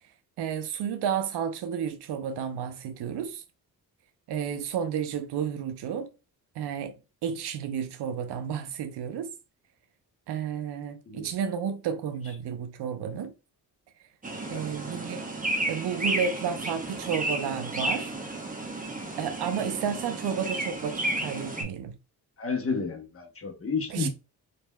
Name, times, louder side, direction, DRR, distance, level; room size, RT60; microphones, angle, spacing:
voice 1, 0.4-3.4 4.3-6.1 6.6-7.0 7.2-9.3 10.3-13.3 14.5-15.2 15.7-18.1 19.2-21.9 23.9-24.1, right 7 dB, 85° right, 0.6 m, -31 dB
sound 1, 14.2-21.6, right 1 dB, 20° right, 0.8 m, -32 dB
voice 2, 22.4-24.1, left 4 dB, 35° left, 1.0 m, -31 dB
3.2 x 2.6 x 2.2 m
cardioid pair, 65°, 39 cm